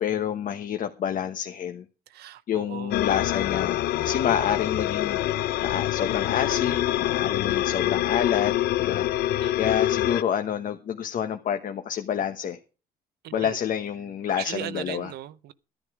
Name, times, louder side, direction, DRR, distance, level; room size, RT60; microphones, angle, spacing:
voice 1, 0.0-1.8 2.5-12.6 13.3-15.1, left 9 dB, 50° left, 1.2 m, -28 dB
voice 2, 2.1-3.0 9.4-9.8 13.2-13.6 14.3-15.5, right 13 dB, 70° right, 0.8 m, -38 dB
sound 1, 2.9-10.2, left 14 dB, 70° left, 0.7 m, -25 dB
13.0 x 10.5 x 4.8 m
cardioid pair, 110°, 17 cm